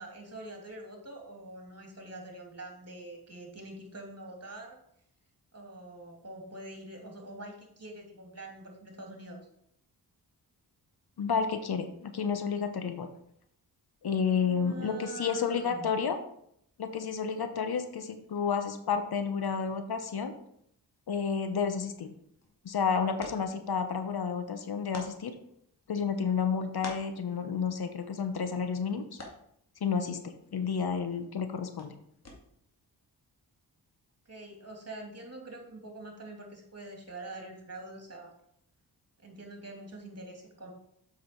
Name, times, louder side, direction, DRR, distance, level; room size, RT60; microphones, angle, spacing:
voice 1, 0.0-4.8 5.5-9.4 14.2-15.9 34.3-38.3 39.2-40.7, right 2 dB, 35° right, 2 dB, 2.7 m, -45 dB
voice 2, 11.2-13.1 14.0-16.2 16.8-20.3 21.1-22.1 22.6-25.4 25.9-29.1 29.8-31.9, left 6 dB, 60° left, 8 dB, 1.0 m, -31 dB
sound 1, 22.0-32.8, left 2 dB, 35° left, 2.5 m, -52 dB
7.5 x 6.2 x 4.5 m, 0.71 s
cardioid pair, 65°, 42 cm